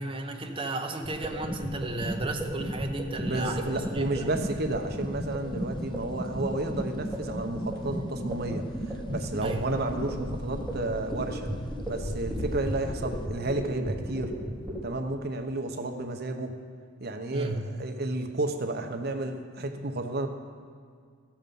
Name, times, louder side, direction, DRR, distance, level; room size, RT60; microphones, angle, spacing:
voice 1, 0.0-4.3 9.4-9.7 17.3-17.6, right 2 dB, 25° right, 2 dB, 0.9 m, -34 dB
sound 1, 1.0-14.8, right 1 dB, 5° left, 3.2 m, -34 dB
voice 2, 3.2-11.5 11.9-14.3 14.8-16.6 17.0-20.3, right 2 dB, 50° right, 5 dB, 0.9 m, -32 dB
sound 2, 3.6-13.3, left 1 dB, 25° left, 0.6 m, -42 dB
13.5 x 7.3 x 5.4 m, 2.1 s
head